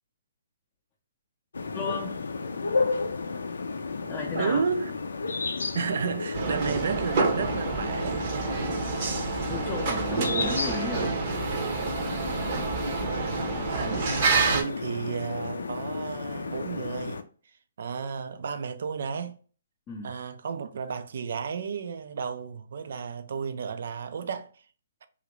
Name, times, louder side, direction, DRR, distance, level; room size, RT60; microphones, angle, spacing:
sound 1, 1.5-17.2, left 4 dB, 85° left, 0.4 m, -33 dB
voice 1, 1.7-2.2 4.1-4.7 5.6-5.8 9.5-11.1 13.8-14.0 19.9-20.1, left 4 dB, 20° left, 0.5 m, -35 dB
voice 2, 4.3-4.9 5.7-8.6 12.8-13.5 14.3-17.2 17.8-19.4 20.0-24.5, right 6 dB, 60° right, 0.4 m, -32 dB
sound 2, 6.3-14.6, right 4 dB, 45° right, 0.7 m, -28 dB
2.9 x 2.5 x 2.9 m
hypercardioid pair, 150°, 0 cm